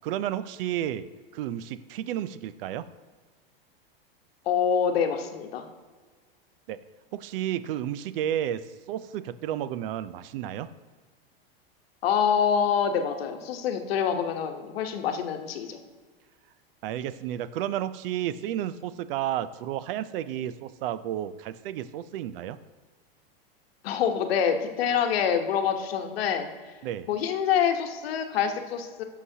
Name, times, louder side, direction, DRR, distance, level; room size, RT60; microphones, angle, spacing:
voice 1, 0.0-1.1 1.3-2.9 6.7-6.8 7.1-10.7 16.8-22.6 26.8-27.1, right 11 dB, 65° right, 15 dB, 0.5 m, -32 dB
voice 2, 4.5-5.7 12.0-15.8 23.8-26.5 27.1-29.0, left 7 dB, 75° left, 6 dB, 1.0 m, -26 dB
11.0 x 6.5 x 2.8 m, 1.4 s
hypercardioid pair, 125°, 30 cm